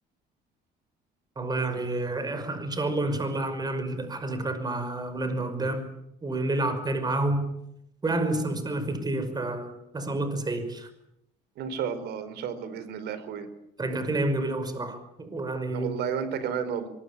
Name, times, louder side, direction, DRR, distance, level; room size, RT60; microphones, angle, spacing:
voice 1, 1.4-5.9 6.2-7.5 8.0-10.9 13.8-15.9, right 2 dB, 25° right, 10 dB, 5.7 m, -29 dB
voice 2, 11.6-13.5 15.7-16.9, right 7 dB, 80° right, 13 dB, 4.4 m, -32 dB
24.5 x 22.0 x 8.5 m, 0.79 s
cardioid pair, 110°, 17 cm